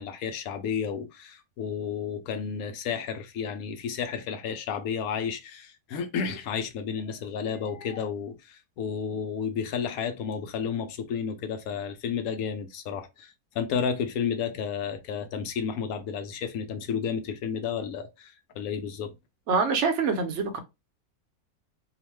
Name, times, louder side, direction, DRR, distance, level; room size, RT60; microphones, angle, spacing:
voice 1, 0.0-19.1, left 7 dB, 75° left, 1.0 m, -32 dB
voice 2, 19.5-20.6, right 4 dB, 60° right, 0.9 m, -25 dB
2.8 x 2.1 x 3.0 m
omnidirectional pair, 1.6 m